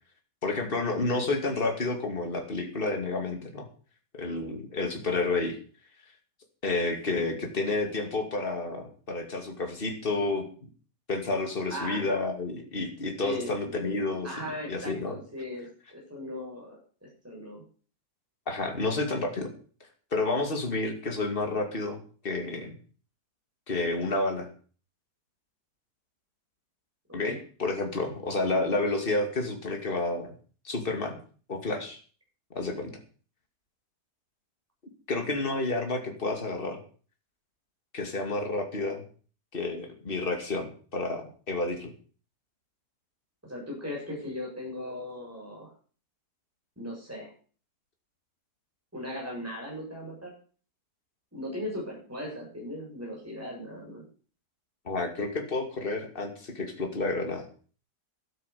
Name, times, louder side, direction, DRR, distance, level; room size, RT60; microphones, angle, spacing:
voice 1, 0.4-3.7 4.1-5.6 6.6-10.4 11.1-14.3 14.7-15.1 18.5-19.5 20.1-22.7 23.7-24.5 27.1-30.3 30.6-31.2 31.5-32.0 32.5-32.9 35.1-36.8 37.9-39.0 39.5-41.9 54.8-57.5, left 2 dB, 30° left, 3 dB, 2.8 m, -30 dB
voice 2, 11.7-12.1 13.2-15.7 15.9-16.8 17.2-17.6 27.1-27.4 43.4-45.7 46.8-47.3 48.9-50.3 51.3-54.0, left 1 dB, 10° right, -3 dB, 7.3 m, -38 dB
12.5 x 9.2 x 7.0 m, 0.41 s
omnidirectional pair, 1.8 m